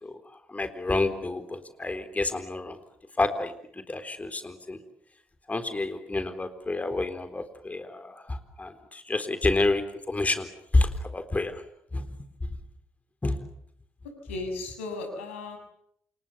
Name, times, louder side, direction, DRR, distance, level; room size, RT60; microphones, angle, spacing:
voice 1, 0.0-2.8 3.2-4.8 5.5-10.5 10.7-11.6 11.9-12.1 13.2-13.4, left 2 dB, 20° left, 9 dB, 3.9 m, -29 dB
voice 2, 14.2-15.6, left 2 dB, 80° left, 6 dB, 6.5 m, -35 dB
30.0 x 28.5 x 6.9 m, 0.69 s
figure-of-eight pair, 45°, 7 cm